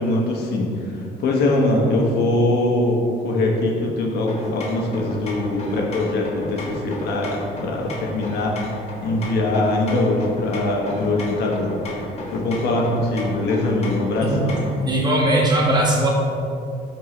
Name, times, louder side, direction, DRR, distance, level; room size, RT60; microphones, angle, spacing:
voice 1, 0.0-11.7 12.3-14.6, left 2 dB, 75° left, -1 dB, 1.3 m, -22 dB
sound 1, 4.3-14.8, left 1 dB, 40° left, 1.5 m, -35 dB
voice 2, 14.8-16.1, right 1 dB, 25° right, -2 dB, 1.6 m, -19 dB
11.0 x 4.5 x 3.2 m, 2.7 s
cardioid pair, 110°, 17 cm